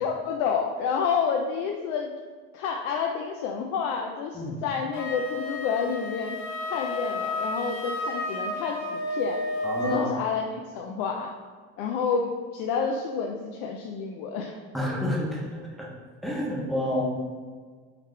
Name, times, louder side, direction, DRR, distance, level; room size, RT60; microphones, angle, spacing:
voice 1, 0.0-2.2 2.5-6.4 6.6-10.4 10.7-11.3 11.8-14.6, left 6 dB, 80° left, 2 dB, 0.5 m, -29 dB
Wind instrument woodwind instrument, 4.9-10.1, left 2 dB, 55° left, 1.1 m, -32 dB
voice 2, 9.6-10.1 14.7-15.9 16.2-17.0, left 1 dB, ahead, -3 dB, 0.8 m, -29 dB
3.9 x 3.1 x 3.2 m, 1.6 s
supercardioid pair, 110°, 33 cm